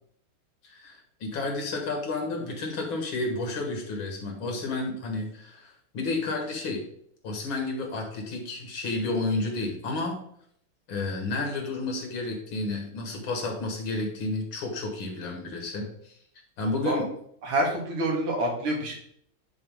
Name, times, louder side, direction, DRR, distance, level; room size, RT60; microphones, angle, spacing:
voice 1, 0.6-6.8 7.2-10.2 10.9-16.2 16.6-17.0, left 3 dB, 70° left, 2 dB, 2.3 m, -31 dB
voice 2, 17.4-19.0, right 1 dB, 90° right, 1 dB, 2.6 m, -27 dB
9.7 x 4.6 x 3.6 m, 0.67 s
omnidirectional pair, 2.3 m